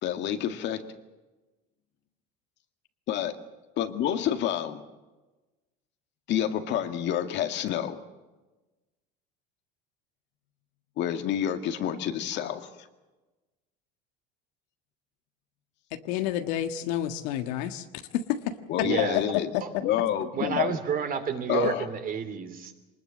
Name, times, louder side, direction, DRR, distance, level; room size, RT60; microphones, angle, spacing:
voice 1, 0.0-0.8 3.1-3.3 3.8-4.8 6.3-8.0 11.0-12.7 18.7-19.5 19.8-20.8 21.5-21.8, left 10 dB, 60° left, 7 dB, 2.1 m, -28 dB
voice 2, 15.9-17.9 18.1-18.9 19.7-19.8, left 11 dB, 85° left, 8 dB, 1.7 m, -30 dB
voice 3, 18.8-19.2 19.6-19.7 20.3-22.7, right 7 dB, 45° right, 8 dB, 3.0 m, -30 dB
23.5 x 20.5 x 7.6 m, 1.1 s
supercardioid pair, 110°, 21 cm